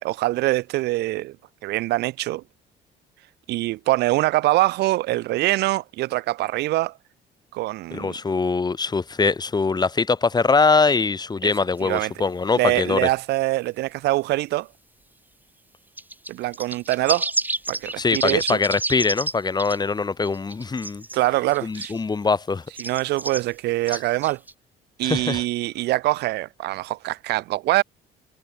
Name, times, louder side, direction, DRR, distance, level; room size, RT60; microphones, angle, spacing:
voice 1, 0.0-1.4 1.6-2.4 3.5-6.9 7.5-8.1 11.4-11.5 11.8-12.1 12.5-14.7 16.3-17.3 17.7-18.6 21.1-21.9 22.8-24.4 25.0-27.8, right 18 dB, 85° right, 3.4 m, -24 dB
voice 2, 7.9-13.1 18.0-21.0 21.6-22.6 23.9-24.0 25.0-25.4, left 4 dB, 25° left, 5.5 m, -22 dB
sound 1, 16.0-19.3 19.6-19.8 20.3-21.2 21.5-22.0 22.8-23.4 23.9-24.5, right 2 dB, 10° right, 6.9 m, -29 dB
cardioid pair, 110°, 17 cm